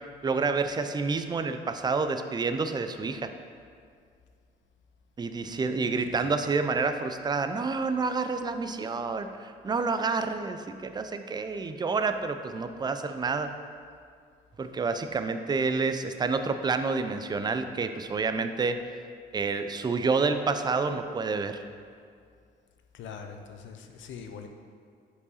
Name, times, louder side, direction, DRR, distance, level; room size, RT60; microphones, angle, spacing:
voice 1, 0.2-3.3 5.2-13.5 14.6-18.8 19.3-21.6, right 4 dB, 20° right, 8 dB, 0.4 m, -29 dB
voice 2, 5.5-6.4 22.9-24.5, left 6 dB, 75° left, 5 dB, 0.6 m, -43 dB
5.4 x 4.7 x 4.1 m, 2.2 s
cardioid pair, 90°, 20 cm